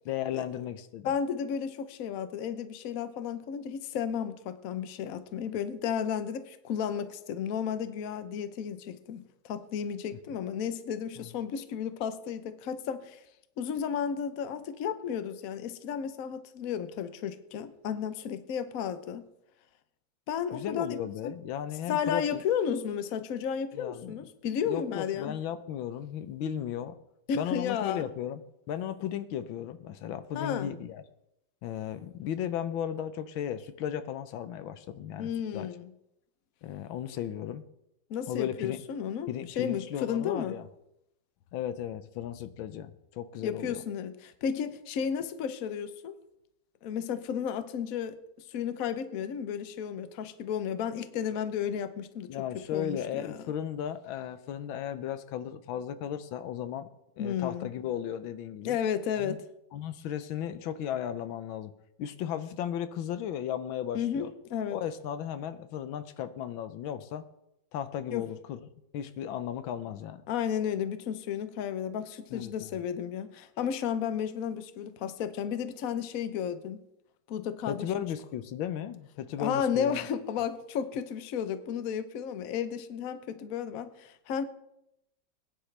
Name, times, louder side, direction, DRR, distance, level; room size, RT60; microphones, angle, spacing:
voice 1, 0.0-1.1 11.2-11.3 20.5-22.4 23.7-24.2 24.7-27.0 27.3-28.4 28.7-31.0 31.6-35.7 36.6-37.6 38.3-38.8 39.3-40.7 41.5-43.8 52.3-56.9 57.2-58.8 59.2-59.4 59.7-61.7 62.0-64.3 64.7-67.2 67.7-68.6 68.9-70.2 72.3-72.8 77.7-80.1, left 10 dB, 90° left, 1.6 m, -35 dB
voice 2, 1.0-13.2 13.6-19.3 20.3-21.0 21.2-21.3 21.9-25.4 27.3-28.1 30.3-30.7 35.2-35.9 38.1-39.3 39.6-40.6 43.4-46.2 46.8-48.2 48.5-52.4 52.7-53.4 57.2-57.7 58.6-59.4 63.9-64.8 68.1-68.3 70.3-76.8 77.3-77.9 79.4-84.4, left 8 dB, 55° left, 1.1 m, -33 dB
21.0 x 10.0 x 3.3 m
omnidirectional pair, 2.1 m